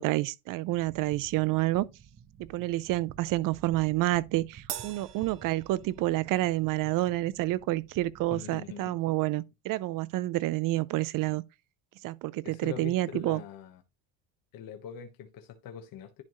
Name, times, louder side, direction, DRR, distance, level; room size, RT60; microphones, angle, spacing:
voice 1, 0.0-1.9 2.4-11.4 12.0-13.4, right 17 dB, 45° right, 0.5 m, -29 dB
sound 1, 0.6-8.3, right 7 dB, 25° right, 0.8 m, -52 dB
Crash cymbal, 4.7-6.4, right 11 dB, 70° right, 1.3 m, -42 dB
voice 2, 8.3-9.1 12.4-13.8 14.5-16.2, left 9 dB, 45° left, 1.2 m, -43 dB
10.5 x 4.4 x 3.0 m
cardioid pair, 140°, 48 cm